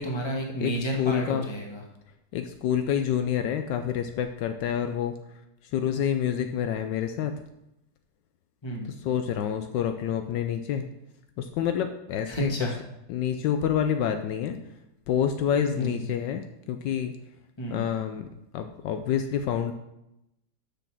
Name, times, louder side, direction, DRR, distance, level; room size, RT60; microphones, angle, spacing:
voice 1, 0.0-1.8 8.6-8.9 12.3-12.7 15.7-16.1 17.6-17.8, right 1 dB, 15° left, 0 dB, 1.3 m, -31 dB
voice 2, 1.0-1.5 2.3-7.3 9.0-10.8 11.4-12.5 13.1-14.6 15.1-17.1 17.7-18.3 18.5-19.7, left 9 dB, 75° left, 7 dB, 1.2 m, -28 dB
6.6 x 6.2 x 5.9 m, 0.87 s
omnidirectional pair, 2.0 m